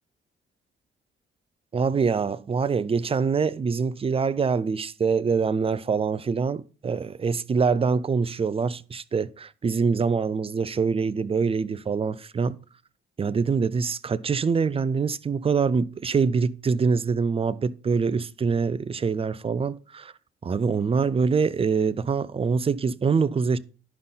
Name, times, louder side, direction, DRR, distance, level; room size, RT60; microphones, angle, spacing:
voice 1, 1.7-12.6 13.2-20.1 20.4-23.6, right 5 dB, 30° right, 0.5 m, -24 dB
11.0 x 5.6 x 3.8 m
cardioid pair, 90°, 20 cm